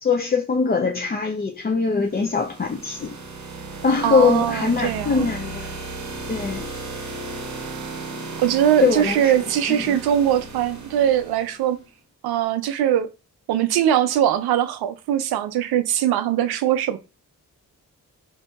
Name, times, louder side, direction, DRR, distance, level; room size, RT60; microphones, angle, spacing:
voice 1, 0.0-3.2 3.8-5.8 6.3-6.7 8.8-9.3 9.7-10.0, left 5 dB, 25° left, 0.5 m, -22 dB
sound 1, 1.9-11.8, right 3 dB, 50° right, 0.8 m, -35 dB
voice 2, 4.0-5.3 8.4-11.8 12.2-13.1 13.5-17.0, right 10 dB, 80° right, 0.5 m, -21 dB
2.8 x 2.6 x 2.3 m
supercardioid pair, 50°, 37 cm